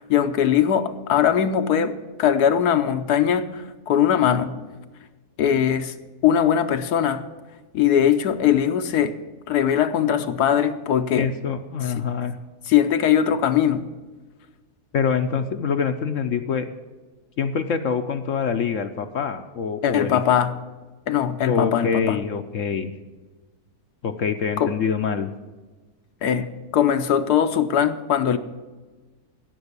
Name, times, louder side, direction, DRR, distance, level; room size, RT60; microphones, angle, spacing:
voice 1, 0.0-4.6 5.4-5.9 6.2-7.2 7.7-9.2 9.5-11.3 12.7-13.8 19.8-20.5 21.1-22.2 24.6-24.7 26.2-28.4, left 9 dB, 75° left, 1.3 m, -20 dB
voice 2, 11.2-12.4 14.9-16.7 17.4-20.2 21.5-22.9 24.0-25.3, left 6 dB, 60° left, 0.9 m, -25 dB
16.5 x 6.2 x 8.1 m
omnidirectional pair, 1.7 m